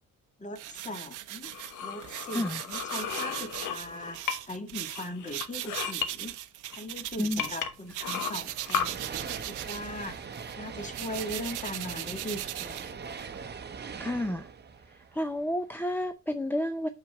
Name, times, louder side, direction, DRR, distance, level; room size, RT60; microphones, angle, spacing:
voice 1, 0.4-1.5 1.8-6.4 6.8-9.0 9.4-10.2 10.6-13.2, left 1 dB, 25° left, 1.7 m, -40 dB
sound 1, 0.6-7.6 7.9-13.4, right 14 dB, 80° right, 0.7 m, -39 dB
sound 2, 1.4-4.6 4.9-6.1 6.7-6.8 7.4-8.9, left 7 dB, 85° left, 1.2 m, -34 dB
sound 3, 8.3-15.8, right 6 dB, 35° right, 0.9 m, -41 dB
voice 2, 14.0-14.5 15.1-16.9, left 1 dB, 5° left, 0.6 m, -30 dB
5.9 x 5.8 x 4.8 m
cardioid pair, 90°, 30 cm